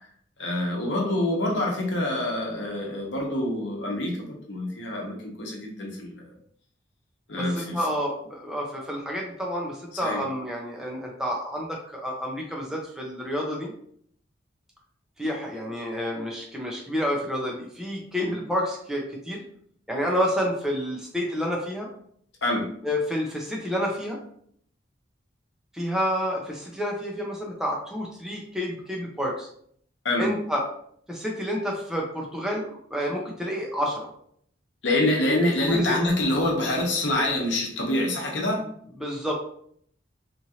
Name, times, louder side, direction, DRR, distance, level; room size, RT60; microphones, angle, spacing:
voice 1, 0.4-6.2 7.3-7.8 10.0-10.2 18.2-18.3 22.4-22.6 30.0-30.3 34.8-38.6, left 1 dB, 75° left, 0 dB, 0.8 m, -26 dB
voice 2, 7.4-13.7 15.2-19.4 19.9-21.9 22.8-24.2 25.7-29.5 30.2-30.6 31.1-34.1 35.7-36.0 39.0-39.3, equal, 5° right, -2 dB, 0.5 m, -29 dB
3.0 x 2.5 x 2.7 m, 0.64 s
head